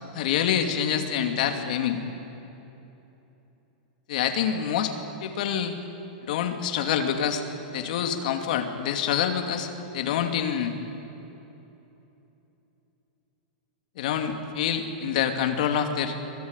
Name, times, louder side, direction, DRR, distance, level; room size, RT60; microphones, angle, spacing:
voice 1, 0.1-2.0 4.1-4.9 5.2-5.7 6.2-7.4 7.7-10.7 14.0-16.1, left 8 dB, 60° left, 6 dB, 2.7 m, -26 dB
25.5 x 18.5 x 10.0 m, 3.0 s
supercardioid pair, 160°, 5 cm